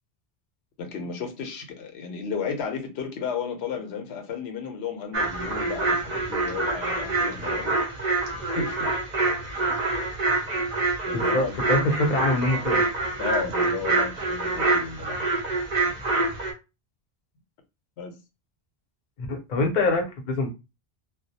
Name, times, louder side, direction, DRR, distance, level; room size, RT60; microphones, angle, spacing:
voice 1, 0.8-7.8 8.4-8.9 10.5-10.7 11.0-11.5 13.2-15.5 15.8-16.0 18.0-18.2, left 6 dB, 75° left, 0.8 m, -33 dB
sound 1, 5.1-16.5, right 3 dB, 50° right, 0.7 m, -26 dB
voice 2, 11.1-12.8 19.2-20.5, left 2 dB, 50° left, 0.7 m, -24 dB
2.3 x 2.0 x 2.7 m
omnidirectional pair, 1.1 m